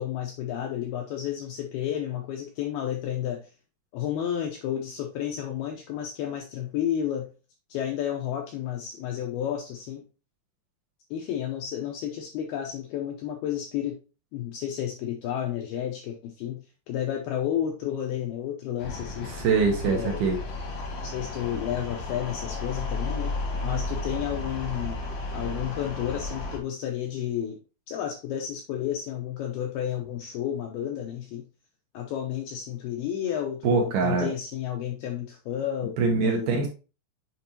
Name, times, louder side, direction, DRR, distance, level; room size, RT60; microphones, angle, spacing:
voice 1, 0.0-3.5 3.9-7.3 7.7-10.0 11.1-14.0 14.3-16.6 16.9-19.3 19.8-20.2 21.0-23.3 23.6-25.0 25.3-27.6 27.9-31.5 31.9-36.5, left 10 dB, 80° left, 2 dB, 2.2 m, -31 dB
sound 1, 18.8-26.6, left 2 dB, 60° left, 1.6 m, -33 dB
voice 2, 19.3-20.4 33.6-34.3 36.0-36.7, right 4 dB, 70° right, 1 dB, 2.5 m, -23 dB
7.7 x 5.1 x 2.8 m, 0.32 s
omnidirectional pair, 5.3 m